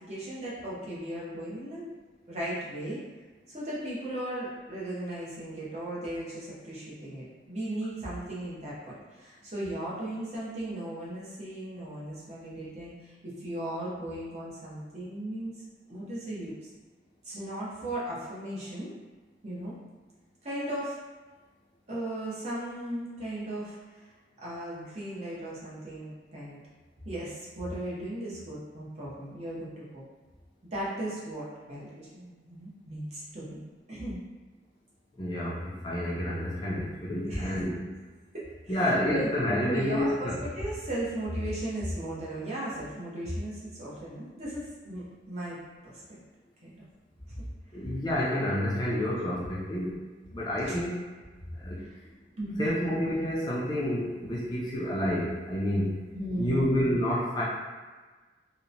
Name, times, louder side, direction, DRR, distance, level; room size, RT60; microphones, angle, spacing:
voice 1, 0.1-1.8 2.3-3.0 3.5-15.6 15.9-16.5 17.2-18.9 19.4-19.7 20.4-21.0 21.9-24.0 24.4-26.6 27.0-30.0 30.7-33.6 33.9-34.2 37.3-37.6 38.3-39.3 39.7-46.0 46.6-46.9 47.3-47.4 49.1-49.2 50.7-50.8 51.8-52.0 52.4-52.7 56.1-56.8, right 1 dB, 35° right, -7 dB, 0.7 m, -36 dB
voice 2, 35.2-37.9 38.7-40.4 47.7-50.0 50.3-51.0 51.6-51.8 52.6-56.0 56.4-57.4, left 1 dB, 25° left, -6 dB, 0.4 m, -29 dB
2.8 x 2.1 x 2.5 m, 1.3 s
head